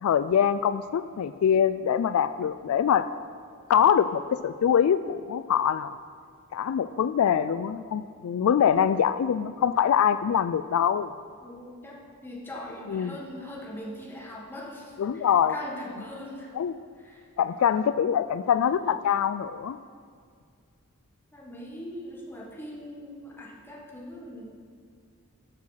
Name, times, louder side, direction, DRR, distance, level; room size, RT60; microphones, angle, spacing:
voice 1, 0.0-3.0 3.7-5.9 6.5-11.1 12.9-13.2 15.0-15.5 16.6-16.7 17.4-19.8, left 8 dB, 75° left, 13 dB, 0.3 m, -24 dB
voice 2, 11.4-16.5 17.0-17.3 21.3-24.6, left 1 dB, 10° left, -3 dB, 1.6 m, -41 dB
12.0 x 6.4 x 5.7 m, 2.1 s
head